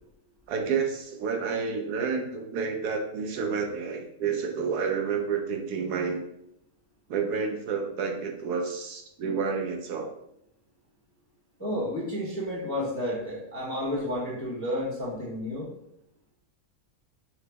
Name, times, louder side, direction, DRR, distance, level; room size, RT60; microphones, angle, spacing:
voice 1, 0.5-6.2 7.1-10.1, right 5 dB, 85° right, 3 dB, 1.2 m, -30 dB
voice 2, 11.6-15.7, left 1 dB, 15° left, -5 dB, 0.5 m, -31 dB
5.5 x 2.0 x 3.4 m, 0.78 s
omnidirectional pair, 1.6 m